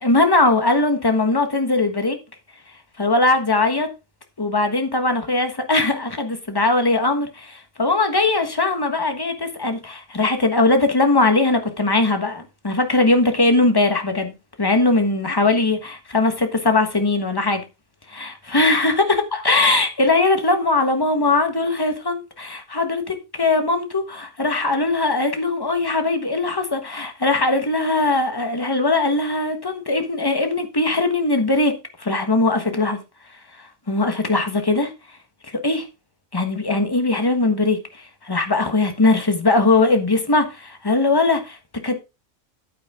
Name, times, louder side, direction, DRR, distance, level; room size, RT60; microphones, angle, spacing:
voice 1, 0.0-2.2 3.0-3.9 4.4-14.3 14.6-17.6 18.1-31.7 32.0-33.0 33.9-34.9 35.6-35.9 36.3-41.6 41.8-41.9, left 2 dB, 15° left, 1.3 m, -20 dB
9.1 x 8.8 x 3.6 m
omnidirectional pair, 1.4 m